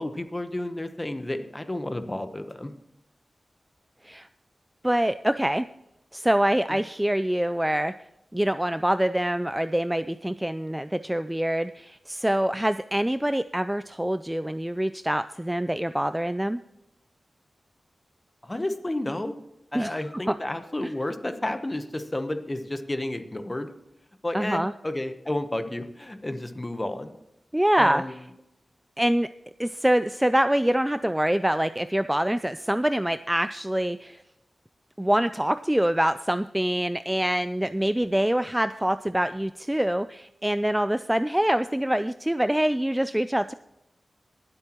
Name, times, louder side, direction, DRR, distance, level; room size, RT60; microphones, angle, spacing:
voice 1, 0.0-2.7 18.4-19.3 19.7-23.7 24.2-27.1 27.8-28.2, left 1 dB, 20° left, 9 dB, 0.9 m, -31 dB
voice 2, 4.8-5.6 6.1-7.9 8.3-16.6 19.7-19.9 20.3-20.4 24.3-24.7 27.5-28.0 29.0-29.3 29.6-34.2 35.0-43.5, right 1 dB, 10° right, 12 dB, 0.3 m, -25 dB
19.5 x 8.0 x 3.0 m, 0.84 s
wide cardioid pair, 120°, 0 cm